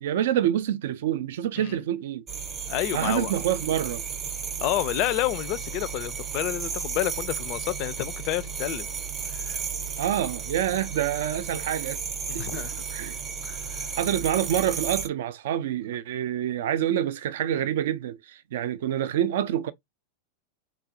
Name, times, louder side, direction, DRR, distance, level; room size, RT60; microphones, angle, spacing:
voice 1, 0.0-2.2 2.9-4.0 10.0-12.0 12.3-12.6 12.9-13.2 14.0-19.7, right 11 dB, 55° right, 0.3 m, -27 dB
sound 1, 2.3-15.1, right 6 dB, 25° right, 0.7 m, -34 dB
voice 2, 2.7-3.3 4.6-8.9 9.3-9.6 12.3-12.8 13.4-14.0, left 15 dB, 40° left, 0.4 m, -30 dB
3.9 x 2.4 x 2.6 m
figure-of-eight pair, 90°, 0 cm